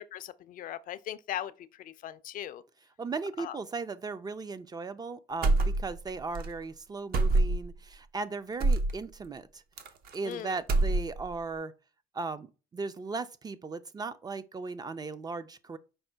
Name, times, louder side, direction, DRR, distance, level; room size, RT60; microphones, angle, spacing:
voice 1, 0.0-2.6 3.4-3.6 10.2-10.6, left 11 dB, 55° left, 0.4 m, -39 dB
voice 2, 3.0-9.6 10.1-11.7 12.1-12.5 12.7-15.8, right 4 dB, 25° right, 0.3 m, -37 dB
sound 1, 5.4-6.1 6.3-6.5 7.1-7.8 8.6-8.9 9.8-10.3 10.6-11.3, right 2 dB, 65° right, 0.7 m, -25 dB
5.3 x 2.1 x 4.4 m
cardioid pair, 110°, 17 cm